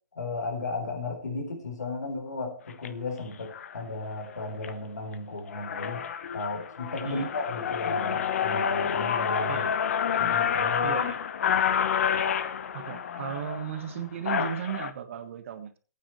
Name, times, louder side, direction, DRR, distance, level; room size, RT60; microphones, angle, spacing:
voice 1, 0.2-6.0 6.3-9.6 10.2-11.0, left 3 dB, 90° left, 3 dB, 4.1 m, -34 dB
sound 1, 2.7-2.9 3.5-3.8 4.3-4.7 5.1-5.2 5.5-14.9, left 7 dB, 55° left, 0.9 m, -28 dB
voice 2, 10.8-11.2 12.7-15.8, right 9 dB, 50° right, 9 dB, 1.4 m, -35 dB
17.5 x 9.0 x 3.2 m, 0.35 s
hypercardioid pair, 160°, 9 cm